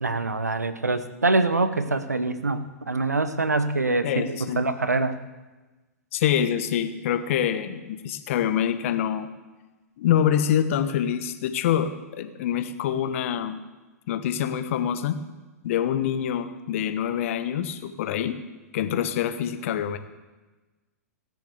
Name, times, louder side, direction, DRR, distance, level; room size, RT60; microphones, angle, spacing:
voice 1, 0.0-5.2, right 3 dB, 90° right, 11 dB, 1.0 m, -25 dB
voice 2, 4.0-4.7 6.1-9.3 10.0-13.6 14.1-15.2 15.6-18.4 18.7-20.0, left 9 dB, 55° left, 10 dB, 1.2 m, -25 dB
17.5 x 7.0 x 8.0 m, 1.2 s
figure-of-eight pair, 105°, 9 cm